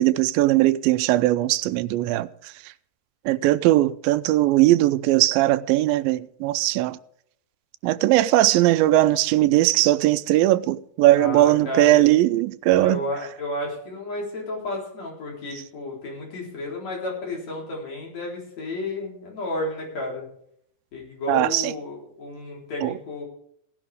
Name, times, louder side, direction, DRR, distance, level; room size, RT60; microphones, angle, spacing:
voice 1, 0.0-2.5 3.3-7.0 7.8-13.0 21.3-21.7 22.8-23.0, right 15 dB, 90° right, 2.4 m, -19 dB
voice 2, 11.1-12.1 12.8-20.3 20.9-23.2, left 2 dB, 50° left, 5.2 m, -32 dB
16.5 x 11.0 x 3.5 m
omnidirectional pair, 4.0 m